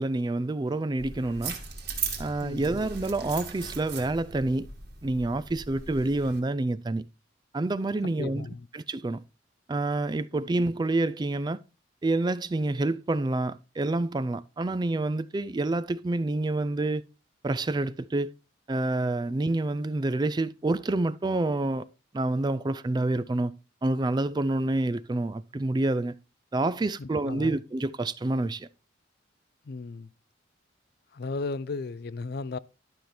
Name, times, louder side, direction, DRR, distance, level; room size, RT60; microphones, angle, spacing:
voice 1, 0.0-1.6 2.2-4.7 5.0-7.0 7.5-8.5 8.7-9.2 9.7-11.6 12.0-17.0 17.4-18.3 18.7-21.8 22.1-23.5 23.8-26.1 26.5-28.7, right 2 dB, 20° right, 0.3 m, -28 dB
sound 1, 1.0-6.4, right 5 dB, 55° right, 1.9 m, -38 dB
voice 2, 2.4-2.8 8.0-8.7 10.3-10.5 27.0-27.6 29.7-30.1 31.1-32.6, left 3 dB, 50° left, 0.4 m, -36 dB
11.5 x 5.9 x 3.3 m
head